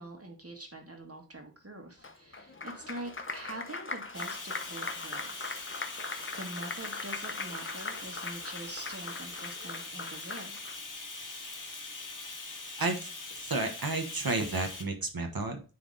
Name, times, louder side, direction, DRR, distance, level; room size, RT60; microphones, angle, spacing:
voice 1, 0.0-5.6 6.4-10.6, right 1 dB, 40° right, 3 dB, 1.9 m, -44 dB
Applause, 2.0-10.8, left 3 dB, 35° left, 0.9 m, -40 dB
Bathtub (filling or washing), 4.1-14.8, left 3 dB, 55° left, 1.4 m, -42 dB
voice 2, 13.4-15.6, right 3 dB, 75° right, 5 dB, 1.3 m, -31 dB
9.8 x 3.5 x 4.0 m, 0.34 s
wide cardioid pair, 60°, 36 cm